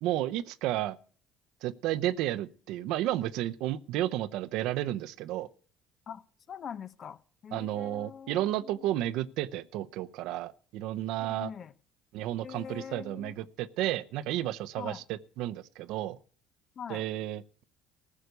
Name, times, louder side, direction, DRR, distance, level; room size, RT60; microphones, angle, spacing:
voice 1, 0.0-1.0 1.6-5.5 7.5-11.5 12.1-16.2 16.9-17.6, right 14 dB, 75° right, 0.7 m, -32 dB
voice 2, 6.5-9.0 11.3-11.7 12.4-13.4 14.8-15.0 16.8-17.0, left 7 dB, 50° left, 0.9 m, -43 dB
14.5 x 6.6 x 8.0 m
supercardioid pair, 85°, 0 cm